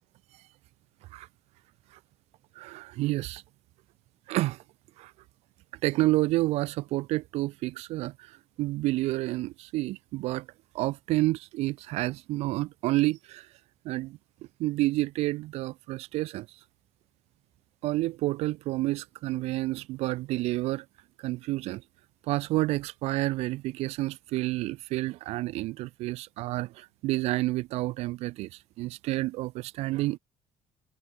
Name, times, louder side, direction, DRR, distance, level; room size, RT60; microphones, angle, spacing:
voice 1, 2.5-3.4 4.3-4.6 5.0-5.1 5.8-10.5 10.7-13.5 13.8-14.2 14.6-16.5 17.8-20.8 21.2-21.8 22.3-30.2, right 18 dB, 80° right, 1.4 m, -29 dB
cardioid pair, 160°, 11 cm